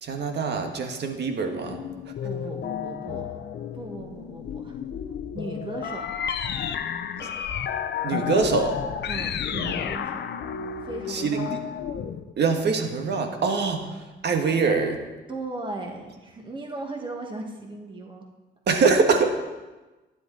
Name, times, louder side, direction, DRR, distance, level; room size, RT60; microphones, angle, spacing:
voice 1, 0.0-1.8 7.2-7.3 8.0-8.8 11.1-11.6 12.4-15.0 18.7-19.3, right 4 dB, 60° right, 4 dB, 1.6 m, -24 dB
sound 1, 1.7-12.3, left 8 dB, 60° left, 0.7 m, -32 dB
voice 2, 2.2-3.4 3.7-4.8 5.3-6.0 9.1-10.2 10.8-11.5 15.3-18.2, right 2 dB, 25° right, 0 dB, 2.0 m, -37 dB
12.0 x 10.5 x 4.2 m, 1.2 s
cardioid pair, 90°, 20 cm